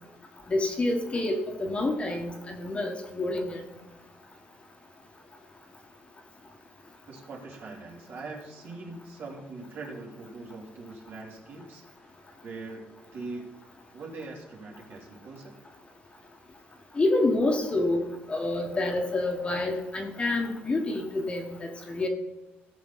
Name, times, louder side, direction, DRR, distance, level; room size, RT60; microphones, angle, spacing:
voice 1, 0.5-3.6 16.9-18.0 18.3-22.1, left 2 dB, 25° left, 2 dB, 1.6 m, -28 dB
voice 2, 7.1-11.9 12.4-13.5 13.9-15.5, right 3 dB, 55° right, -2 dB, 3.2 m, -42 dB
16.5 x 6.3 x 4.2 m, 1.0 s
cardioid pair, 125°, 5 cm